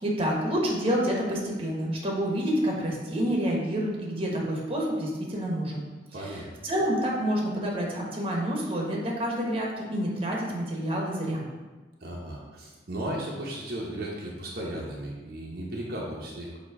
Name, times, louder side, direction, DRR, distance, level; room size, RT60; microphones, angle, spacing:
voice 1, 0.0-5.8 6.2-11.5, equal, 30° right, -2 dB, 1.1 m, -28 dB
voice 2, 6.1-6.5 12.0-16.6, right 1 dB, 55° right, -4 dB, 0.9 m, -35 dB
7.0 x 3.0 x 4.7 m, 1.3 s
head